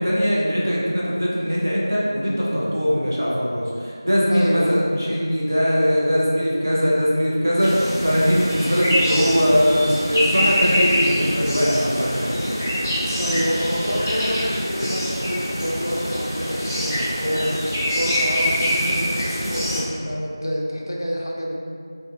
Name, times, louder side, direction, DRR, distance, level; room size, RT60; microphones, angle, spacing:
voice 1, 0.0-12.4, equal, 40° right, -7 dB, 0.5 m, -21 dB
voice 2, 4.3-4.8 13.2-21.5, equal, 60° left, -2 dB, 0.4 m, -27 dB
sound 1, 7.6-19.8, equal, 20° left, 0.7 m, -24 dB
2.6 x 2.5 x 2.3 m, 2.3 s
figure-of-eight pair, 180°, 2 cm